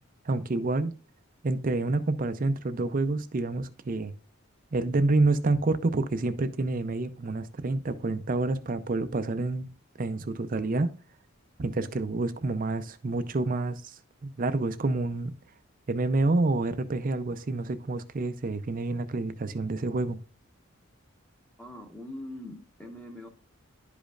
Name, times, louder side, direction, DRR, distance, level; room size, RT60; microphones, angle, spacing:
voice 1, 0.3-0.9 1.4-4.1 4.7-9.7 10.0-10.9 11.6-14.0 14.2-15.3 15.9-20.2, right 2 dB, 40° right, 0.5 m, -28 dB
voice 2, 21.6-23.3, left 1 dB, 5° left, 0.9 m, -42 dB
11.5 x 5.1 x 2.4 m
head